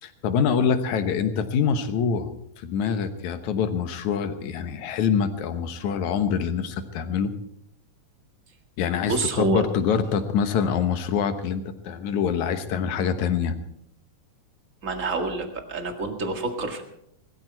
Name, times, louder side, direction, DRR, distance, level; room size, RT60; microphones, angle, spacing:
voice 1, 0.0-2.3 2.6-7.3 8.8-13.6, left 7 dB, 65° left, 9 dB, 2.3 m, -25 dB
voice 2, 9.1-9.6 14.8-16.8, right 3 dB, 30° right, 5 dB, 1.5 m, -27 dB
21.0 x 14.0 x 4.6 m, 0.75 s
omnidirectional pair, 4.0 m